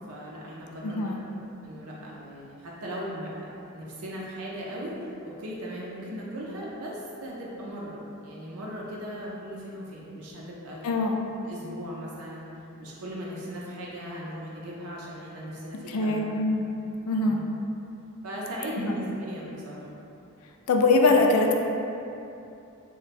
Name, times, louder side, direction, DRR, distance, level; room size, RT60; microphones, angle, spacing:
voice 1, 0.1-1.2 1.6-3.5 3.7-10.8 11.4-12.5 12.8-16.2 17.2-17.4 18.2-19.9, equal, 70° right, -5 dB, 0.5 m, -37 dB
voice 2, 0.8-1.2 10.8-11.2 15.9-16.7 17.1-17.4 18.8-18.9 20.7-21.5, left 3 dB, 70° left, 2 dB, 0.4 m, -22 dB
3.1 x 2.2 x 4.1 m, 2.8 s
head